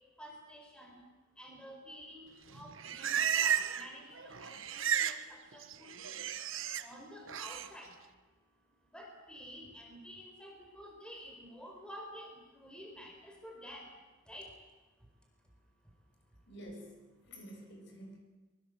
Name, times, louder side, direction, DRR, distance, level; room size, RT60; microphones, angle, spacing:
voice 1, 0.2-1.0 1.4-6.2 6.8-7.9 8.9-13.9 14.3-14.5, equal, 5° left, 1 dB, 4.6 m, -50 dB
Livestock farm animals working animals, 2.5-3.9 4.2-5.2 5.5-6.8 7.3-7.7, right 8 dB, 80° right, 1.3 m, -33 dB
voice 2, 16.5-18.2, equal, 60° left, 2 dB, 7.1 m, -49 dB
24.0 x 23.5 x 8.0 m, 1.2 s
head